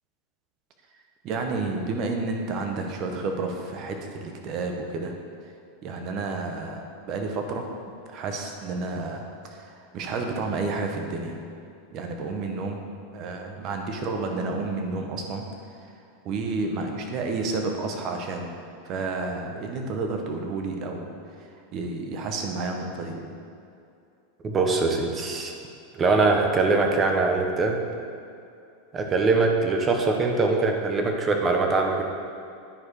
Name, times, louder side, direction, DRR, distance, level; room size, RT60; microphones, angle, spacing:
voice 1, 1.2-5.1 5.8-7.7 8.1-11.4 11.9-12.8 13.1-15.4 16.2-18.5 18.8-21.1 21.7-23.2, right 3 dB, 45° right, 3 dB, 1.2 m, -30 dB
voice 2, 24.4-25.5 25.9-27.8 28.9-32.0, right 3 dB, 25° right, 3 dB, 1.1 m, -22 dB
10.0 x 4.8 x 4.9 m, 2.5 s
hypercardioid pair, 120°, 0 cm